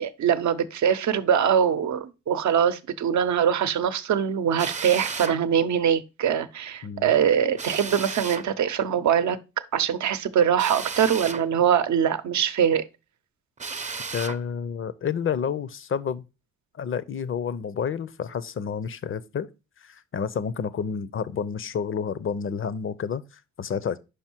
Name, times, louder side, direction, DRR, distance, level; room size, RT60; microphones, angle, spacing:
voice 1, 0.0-9.4 9.7-12.9, right 8 dB, 60° right, 0.8 m, -23 dB
Drill, 4.6-5.4 7.6-8.5 10.6-11.5 13.6-14.4, right 4 dB, 25° right, 0.7 m, -34 dB
voice 2, 14.1-16.3 16.8-19.5 19.8-24.0, left 7 dB, 40° left, 0.6 m, -30 dB
5.4 x 5.0 x 4.5 m
supercardioid pair, 55°, 32 cm